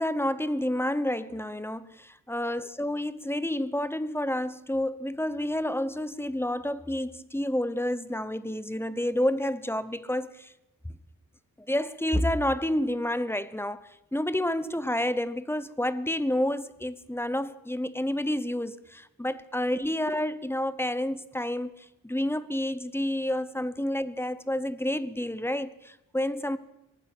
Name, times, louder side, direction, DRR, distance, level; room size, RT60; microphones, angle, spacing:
voice 1, 0.0-10.5 11.7-26.6, left 1 dB, 5° left, 0.9 m, -29 dB
23.5 x 19.0 x 6.1 m
wide cardioid pair, 125°, 33 cm